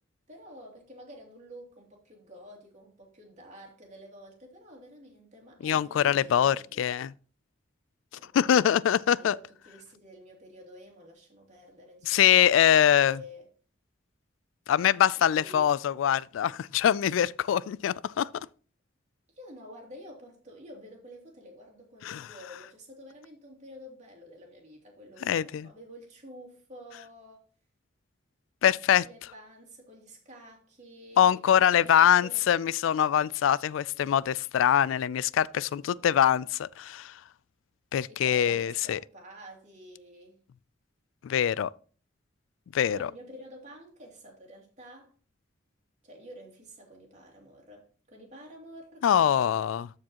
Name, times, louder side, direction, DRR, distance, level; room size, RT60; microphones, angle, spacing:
voice 1, 0.3-6.9 8.1-13.5 15.2-15.7 19.3-27.4 29.0-31.4 31.7-32.4 35.6-36.1 38.1-40.4 42.9-45.1 46.0-49.6, equal, 40° right, 2.6 m, -49 dB
voice 2, 5.6-7.1 8.3-9.3 12.1-13.2 14.7-18.3 22.0-22.2 25.3-25.7 28.6-29.0 31.2-37.1 37.9-39.0 41.2-41.7 42.7-43.0 49.0-49.9, left 9 dB, 90° left, 0.3 m, -23 dB
13.5 x 4.8 x 2.9 m
head